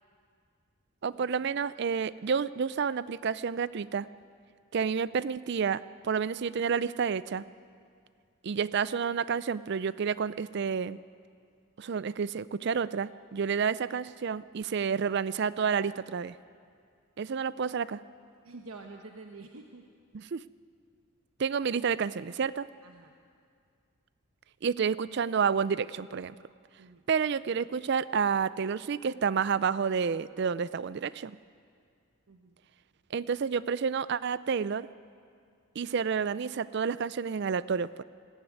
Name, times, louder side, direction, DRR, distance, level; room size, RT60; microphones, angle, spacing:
voice 1, 1.0-4.1 4.7-7.4 8.4-11.0 11.8-16.4 17.2-18.0 20.1-20.4 21.4-22.7 24.6-26.4 27.1-31.4 33.1-34.9 35.8-38.0, right 6 dB, 50° right, 18 dB, 0.4 m, -30 dB
voice 2, 18.4-19.8 22.8-23.1 26.8-27.0 32.3-32.6, right 3 dB, 80° right, 3 dB, 1.1 m, -48 dB
19.0 x 15.0 x 9.5 m, 2.3 s
head